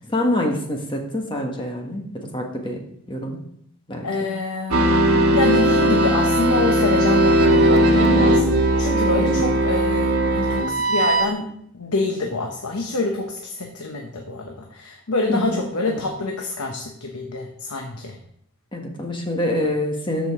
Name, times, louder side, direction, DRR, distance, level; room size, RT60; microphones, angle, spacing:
voice 1, 0.1-2.8 3.1-3.4 3.9-4.1 9.2-9.5 15.3-15.6 15.9-16.0 18.7-20.3, left 1 dB, 20° left, 2 dB, 1.3 m, -26 dB
voice 2, 4.0-5.0 5.3-18.2, left 3 dB, 90° left, 3 dB, 0.9 m, -26 dB
sound 1, 4.7-11.3, right 1 dB, 80° right, 1.3 m, -18 dB
13.0 x 5.1 x 3.6 m, 0.70 s
head